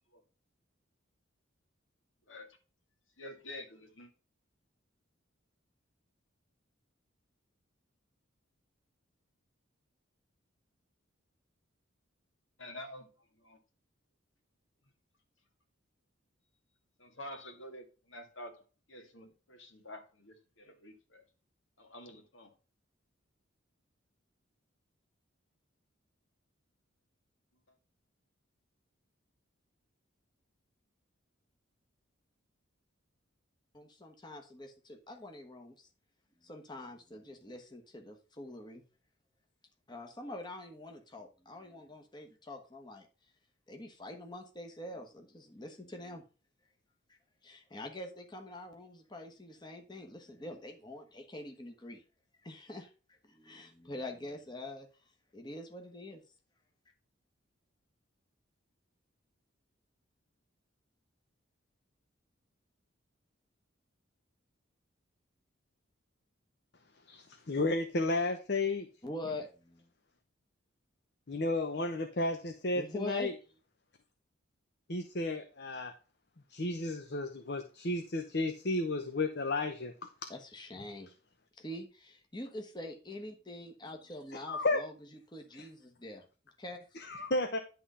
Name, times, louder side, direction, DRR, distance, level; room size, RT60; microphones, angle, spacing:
voice 1, 2.3-2.6 3.2-4.1 12.6-13.1 13.4-13.6 17.0-18.6 18.9-21.3 21.8-22.5, left 1 dB, 70° left, 1.9 m, -48 dB
voice 2, 33.7-35.9 36.4-38.8 39.9-43.1 43.7-46.2 47.1-52.0 52.4-54.9 55.3-56.2 69.0-69.8 72.7-73.3 80.3-81.1 81.6-84.9 85.3-86.2 86.6-86.8, left 1 dB, 20° left, 1.3 m, -45 dB
voice 3, 67.1-68.9 71.3-73.3 74.9-75.9 76.5-79.9 84.5-84.8 85.5-85.6 87.0-87.6, left 2 dB, 50° left, 0.9 m, -33 dB
11.0 x 3.8 x 5.5 m
head